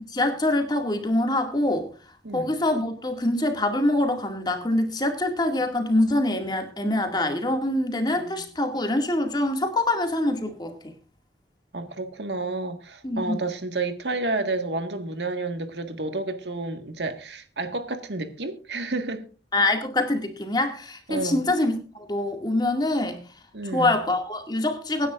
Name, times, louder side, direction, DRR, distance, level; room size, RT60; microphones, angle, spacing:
voice 1, 0.1-1.9 2.3-10.8 13.0-13.4 19.5-23.2 23.7-25.1, left 1 dB, 25° left, 2.1 m, -25 dB
voice 2, 11.7-19.2 21.1-21.5 23.5-23.9, right 2 dB, 80° right, 1.7 m, -30 dB
24.0 x 10.0 x 2.5 m
head